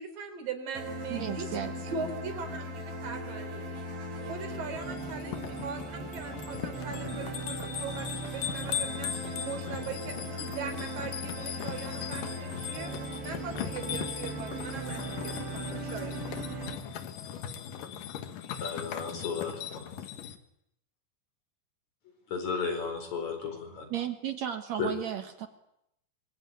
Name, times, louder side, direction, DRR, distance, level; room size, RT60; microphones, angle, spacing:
voice 1, 0.0-1.5 1.7-2.6 3.0-3.7 4.2-9.1 9.4-12.9 13.2-16.2, right 5 dB, 50° right, 5.6 m, -40 dB
sound 1, 0.8-16.8, right 1 dB, 85° right, 7.2 m, -38 dB
voice 2, 1.1-1.7 23.9-25.5, right 10 dB, 70° right, 1.7 m, -34 dB
sound 2, 4.8-20.4, left 9 dB, 60° left, 2.6 m, -39 dB
voice 3, 18.6-19.9 22.3-23.9 24.7-24.9, left 5 dB, 40° left, 5.5 m, -34 dB
26.5 x 23.0 x 9.4 m
omnidirectional pair, 5.0 m